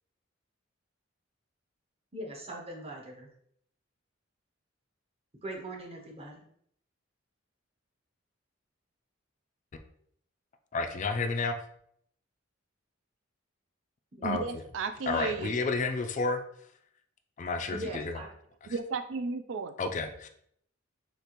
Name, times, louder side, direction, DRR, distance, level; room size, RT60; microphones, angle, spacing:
voice 1, 2.1-3.3 5.4-6.4 14.1-14.3 17.7-18.3, right 1 dB, 30° right, 0 dB, 0.9 m, -40 dB
voice 2, 10.7-11.6 14.2-14.4 15.1-16.4 17.4-18.2 19.8-20.3, left 3 dB, 40° left, 6 dB, 0.4 m, -30 dB
voice 3, 14.2-15.5 18.7-19.8, right 4 dB, 65° right, 8 dB, 0.3 m, -34 dB
6.5 x 2.5 x 3.0 m, 0.68 s
head